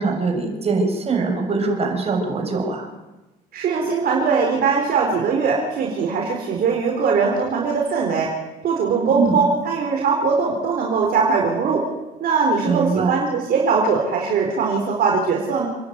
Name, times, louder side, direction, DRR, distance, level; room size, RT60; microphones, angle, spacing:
voice 1, 0.0-2.9 9.1-9.4 12.6-13.1, right 4 dB, 35° right, 1 dB, 6.9 m, -22 dB
voice 2, 3.5-8.3 8.6-11.8 12.2-15.7, right 5 dB, 60° right, 0 dB, 4.3 m, -20 dB
29.0 x 10.5 x 9.6 m, 1.1 s
cardioid pair, 110°, 17 cm